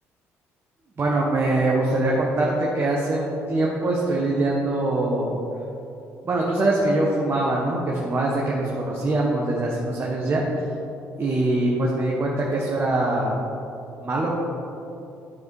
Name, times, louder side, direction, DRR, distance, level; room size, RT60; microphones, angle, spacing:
voice 1, 1.0-5.4 6.2-10.4 11.2-13.4 14.0-14.3, right 2 dB, 40° right, -3 dB, 1.4 m, -23 dB
11.0 x 4.7 x 4.8 m, 2.8 s
hypercardioid pair, 60°, 6 cm